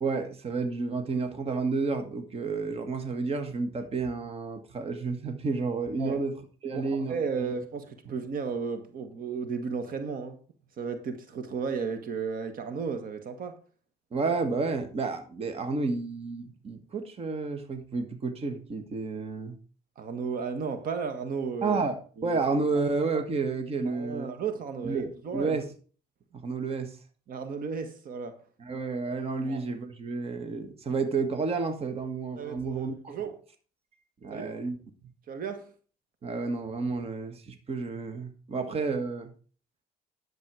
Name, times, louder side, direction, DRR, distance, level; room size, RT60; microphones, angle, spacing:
voice 1, 0.0-7.1 14.1-19.6 21.6-24.3 24.8-25.7 26.3-27.0 28.6-33.1 34.2-34.8 36.2-39.3, right 4 dB, 35° right, 1.7 m, -31 dB
voice 2, 6.7-10.4 10.8-13.6 20.0-21.8 22.2-22.3 23.9-25.6 27.3-28.4 29.5-29.6 32.4-33.4 34.3-34.5 35.3-35.7, right 5 dB, 55° right, 1.7 m, -34 dB
11.0 x 7.7 x 4.9 m
cardioid pair, 110°, 17 cm